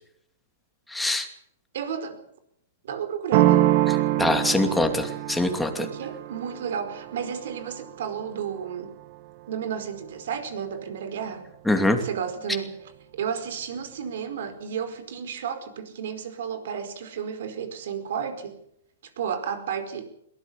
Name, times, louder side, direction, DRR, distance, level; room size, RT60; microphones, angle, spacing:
voice 1, 0.9-1.3 3.9-5.9 11.7-12.0, left 2 dB, 5° left, 5 dB, 2.6 m, -24 dB
voice 2, 1.7-2.2 2.8-3.7 5.8-8.9 9.5-11.5 12.0-18.6 19.0-20.1, right 7 dB, 65° right, 10 dB, 4.8 m, -32 dB
sound 1, 3.3-8.9, right 14 dB, 40° right, 1.5 m, -25 dB
22.0 x 18.5 x 7.2 m, 0.74 s
hypercardioid pair, 155°, 0 cm